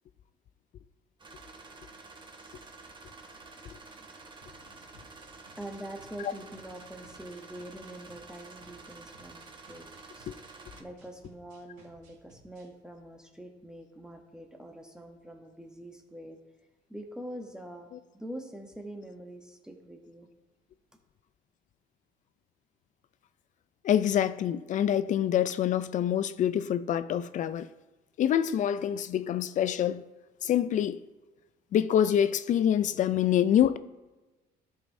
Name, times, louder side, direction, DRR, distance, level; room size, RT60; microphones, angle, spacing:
sound 1, 1.2-10.8, right 3 dB, 30° right, 1.1 m, -50 dB
sound 2, 4.4-12.7, right 2 dB, 85° right, 2.7 m, -60 dB
voice 1, 5.1-9.9 10.1-10.3 10.8-16.4 16.9-20.3, right 1 dB, 5° right, 0.9 m, -44 dB
voice 2, 23.8-27.7 28.2-30.0 30.4-31.0 31.7-33.8, left 10 dB, 50° left, 0.4 m, -26 dB
13.0 x 5.4 x 2.7 m
cardioid pair, 110°, 17 cm